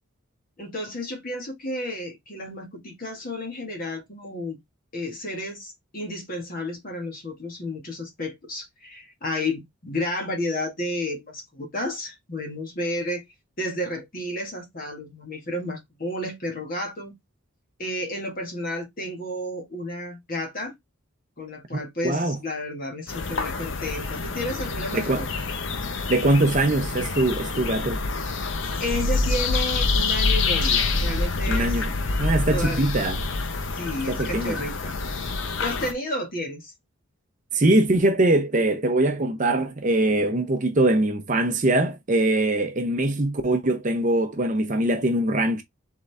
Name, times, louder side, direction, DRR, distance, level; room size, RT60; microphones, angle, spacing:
voice 1, 0.6-4.6 4.9-13.2 13.6-17.1 17.8-20.7 21.4-25.3 28.4-31.8 32.5-32.9 33.7-34.9 35.6-36.7, left 1 dB, 40° left, 1.6 m, -32 dB
voice 2, 22.0-22.4 24.9-25.2 26.1-28.0 31.5-31.9 32.2-33.2 34.1-34.7 37.5-45.6, right 2 dB, 35° right, 0.7 m, -22 dB
sound 1, 23.1-35.9, left 3 dB, 60° left, 0.7 m, -26 dB
3.9 x 3.7 x 3.3 m
head